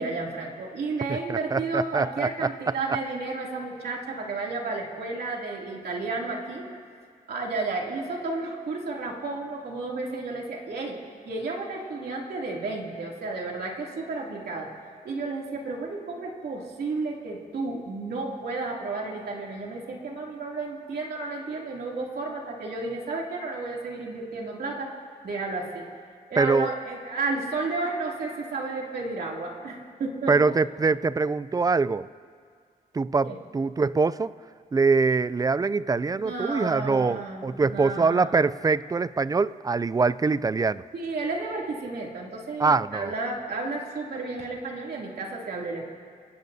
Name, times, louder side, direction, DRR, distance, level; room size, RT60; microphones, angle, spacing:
voice 1, 0.0-6.7 7.3-11.0 11.2-14.7 15.0-25.0 25.2-25.8 26.3-30.5 33.3-33.4 36.1-38.3 40.9-45.9, right 3 dB, 80° right, -2 dB, 2.8 m, -32 dB
voice 2, 1.1-2.7 26.4-26.7 30.3-32.1 32.9-34.3 34.7-40.8 42.6-43.1, right 4 dB, 25° right, 17 dB, 0.3 m, -24 dB
28.0 x 17.0 x 2.7 m, 2.1 s
wide cardioid pair, 105°, 16 cm